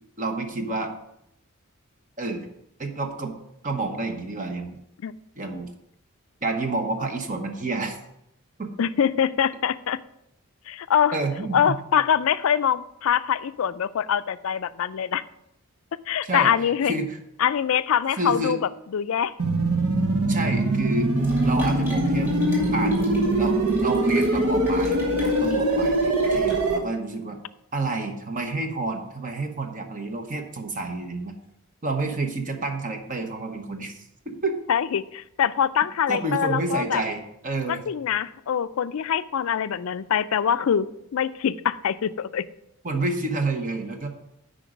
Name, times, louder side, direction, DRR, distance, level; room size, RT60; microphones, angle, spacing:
voice 1, 0.2-0.9 2.2-2.5 2.8-3.3 3.6-4.8 5.4-5.7 6.4-8.0 8.6-8.7 11.1-11.8 16.2-16.5 16.8-17.2 18.2-18.6 20.3-21.1 21.4-22.3 22.7-23.0 23.4-27.4 27.7-31.3 31.8-33.9 34.3-34.6 36.1-37.8 42.8-44.1, right 2 dB, 35° right, 5 dB, 1.0 m, -29 dB
voice 2, 8.8-10.0 10.7-11.2 11.5-15.2 16.1-16.9 17.4-19.3 34.7-37.0 37.7-42.4, left 8 dB, 65° left, 15 dB, 0.4 m, -24 dB
sound 1, 19.4-26.8, right 1 dB, 70° right, 1.0 m, -22 dB
sound 2, 21.2-26.8, equal, 10° right, 2.3 m, -38 dB
9.1 x 5.1 x 5.1 m, 0.80 s
head